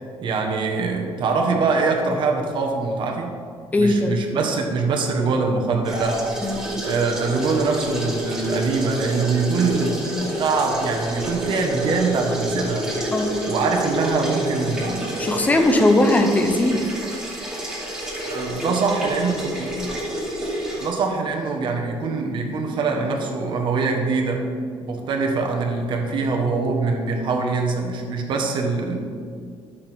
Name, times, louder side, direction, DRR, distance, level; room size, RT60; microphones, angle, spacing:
voice 1, 0.2-3.4 3.7-6.2 6.8-10.1 10.4-12.9 13.4-15.2 18.3-19.8 20.8-24.5 24.8-29.0, right 4 dB, 60° right, 2 dB, 1.3 m, -23 dB
voice 2, 3.7-4.2 6.4-6.7 13.1-13.4 15.2-16.9, left 1 dB, 15° left, 6 dB, 0.7 m, -19 dB
sound 1, 5.9-20.9, right 1 dB, 5° right, 2.5 m, -29 dB
11.0 x 7.0 x 3.6 m, 2.2 s
cardioid pair, 140°, 9 cm